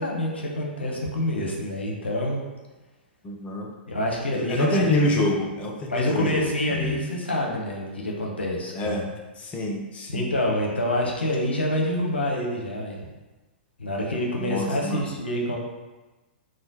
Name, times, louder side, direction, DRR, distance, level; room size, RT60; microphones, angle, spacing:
voice 1, 0.0-2.4 3.9-5.0 5.9-8.9 10.1-13.0 13.8-15.6, left 1 dB, 90° left, -1 dB, 0.7 m, -27 dB
voice 2, 3.2-3.7 4.3-7.0 8.7-9.1 9.4-10.3 14.4-15.0, left 1 dB, 25° left, 0 dB, 0.5 m, -27 dB
3.1 x 2.2 x 3.9 m, 1.2 s
hypercardioid pair, 110°, 6 cm